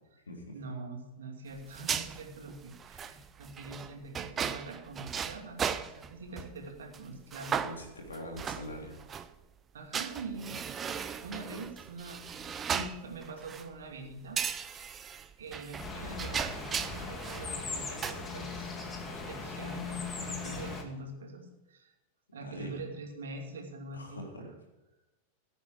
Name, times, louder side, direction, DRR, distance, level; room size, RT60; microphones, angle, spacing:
voice 1, 0.5-7.6 9.7-10.6 11.2-14.4 14.7-14.9 15.4-18.7 19.2-21.9 22.3-24.5, right 3 dB, 65° right, 2 dB, 2.6 m, -44 dB
sound 1, 1.6-6.5 6.9-7.0 7.3-9.3 9.9-13.7 14.4-17.5 17.8-18.1, right 7 dB, 25° right, 0.7 m, -36 dB
voice 2, 7.5-9.1 19.1-19.2 22.3-22.7 23.9-24.5, left 1 dB, 75° left, 1 dB, 3.3 m, -43 dB
sound 2, 15.8-20.8, left 4 dB, 20° left, 2.1 m, -39 dB
16.0 x 8.7 x 5.0 m, 1.0 s
figure-of-eight pair, 90°, 0 cm